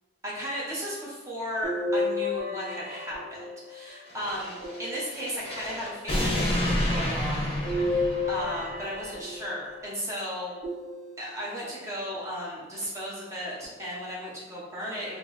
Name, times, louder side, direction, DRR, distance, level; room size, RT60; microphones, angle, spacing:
voice 1, 0.2-4.5 4.8-7.5 7.8-10.5 11.2-15.2, equal, 15° right, -6 dB, 0.7 m, -35 dB
sound 1, 1.6-3.9 4.6-5.6 7.6-9.7 10.6-11.5 12.1-12.2 13.6-13.7, left 2 dB, 45° right, 1.3 m, -32 dB
sound 2, 4.1-8.9, left 1 dB, 35° left, 0.6 m, -30 dB
4.0 x 2.0 x 3.1 m, 1.3 s
head